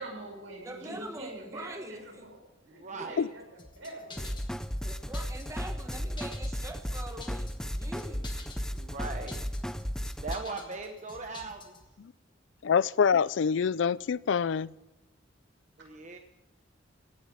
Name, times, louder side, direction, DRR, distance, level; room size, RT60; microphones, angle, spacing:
voice 1, 0.0-4.3 7.2-7.4 8.3-8.4 15.8-15.9, right 1 dB, 80° right, -1 dB, 6.3 m, -45 dB
voice 2, 0.6-2.3 3.0-3.1 4.8-8.3, right 1 dB, 15° right, 4 dB, 1.3 m, -43 dB
voice 3, 2.8-3.2 8.7-9.4 10.2-11.7 15.8-16.2, right 3 dB, 40° right, 4 dB, 1.2 m, -39 dB
sound 1, 3.6-11.9, left 4 dB, 25° left, 1.7 m, -50 dB
sound 2, 4.2-10.4, equal, 5° left, 0.6 m, -35 dB
voice 4, 12.6-14.7, left 6 dB, 70° left, 20 dB, 0.4 m, -26 dB
17.0 x 7.3 x 9.4 m, 1.0 s
head